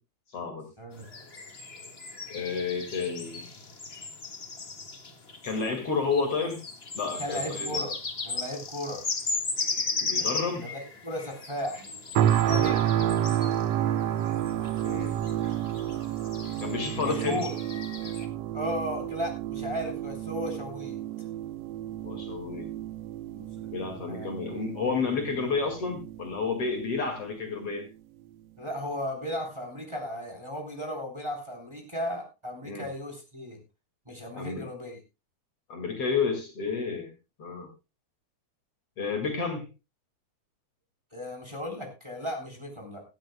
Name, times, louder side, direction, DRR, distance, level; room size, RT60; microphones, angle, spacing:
voice 1, 0.3-0.7 2.3-3.4 5.4-6.6 6.9-7.8 10.0-10.7 14.8-15.1 16.6-17.4 22.0-22.7 23.7-27.9 32.6-32.9 34.3-34.7 35.7-37.1 37.4-37.7 39.0-39.7, left 5 dB, 50° left, 4 dB, 3.0 m, -30 dB
sound 1, 1.0-18.3, left 3 dB, 30° left, 1.1 m, -37 dB
voice 2, 7.2-7.9 8.2-9.0 9.6-10.3 10.6-12.0 12.3-13.0 14.7-15.3 15.9-16.5 17.0-17.5 18.2-21.0 23.3-24.3 28.6-33.6 34.1-35.0 41.1-43.0, equal, 10° right, 3 dB, 3.5 m, -36 dB
sound 2, 12.2-27.2 27.7-27.8, right 11 dB, 70° right, 1.7 m, -30 dB
16.5 x 14.5 x 2.2 m, 0.28 s
omnidirectional pair, 3.5 m